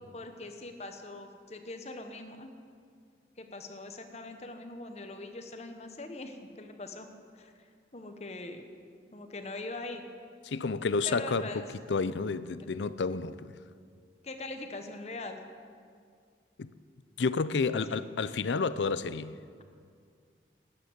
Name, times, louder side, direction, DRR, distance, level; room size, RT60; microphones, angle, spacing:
voice 1, 0.1-2.5 3.4-7.1 7.3-7.7 7.9-8.7 9.1-10.1 11.0-11.6 14.2-15.4 17.9-18.1, left 2 dB, 35° left, 1.1 m, -42 dB
voice 2, 10.5-11.5 11.9-13.5 16.6-16.7 17.2-19.4, left 4 dB, 80° left, 0.5 m, -30 dB
12.0 x 9.0 x 9.6 m
head